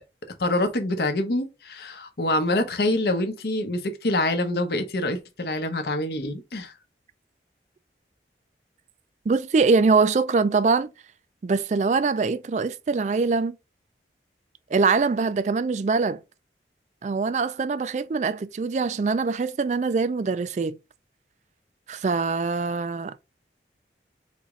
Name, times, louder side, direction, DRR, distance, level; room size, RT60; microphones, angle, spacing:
voice 1, 0.4-6.7, left 1 dB, 60° left, 0.8 m, -26 dB
voice 2, 9.3-10.9 11.4-13.6 14.7-16.2 17.0-20.8 21.9-23.1, right 4 dB, 40° right, 0.3 m, -23 dB
4.1 x 3.0 x 3.5 m
head